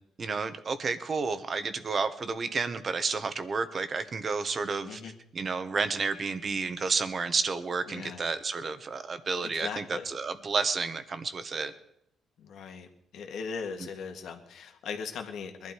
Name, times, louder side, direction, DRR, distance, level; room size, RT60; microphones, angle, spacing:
voice 1, 0.2-5.0 5.3-11.7, right 4 dB, 40° right, 10 dB, 1.3 m, -31 dB
voice 2, 7.9-8.3 9.4-10.1 12.4-12.9 13.1-15.7, left 6 dB, 75° left, 4 dB, 2.0 m, -39 dB
21.5 x 12.0 x 4.7 m, 0.76 s
cardioid pair, 90°, 0 cm